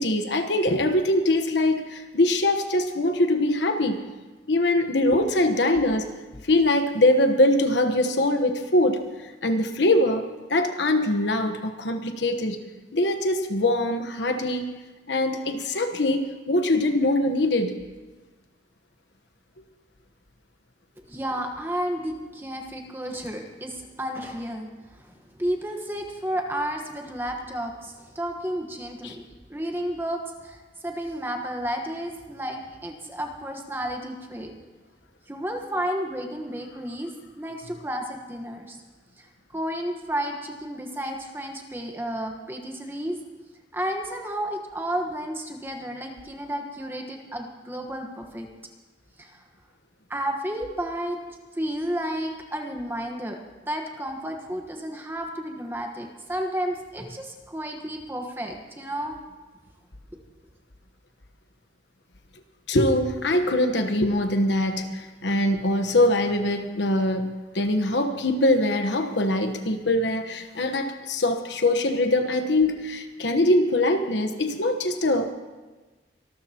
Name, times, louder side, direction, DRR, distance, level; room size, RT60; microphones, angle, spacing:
voice 1, 0.0-4.0 4.5-6.1 6.4-10.2 10.5-12.6 12.9-14.7 15.1-17.8 29.0-29.2 62.7-75.3, left 1 dB, 75° left, 7 dB, 1.2 m, -23 dB
voice 2, 21.1-29.2 29.5-34.5 35.3-38.8 39.2-39.3 39.5-43.2 43.7-48.5 49.2-49.4 50.1-51.2 51.5-53.4 53.7-59.2, equal, 10° right, 3 dB, 1.3 m, -32 dB
25.0 x 13.5 x 3.0 m, 1.3 s
head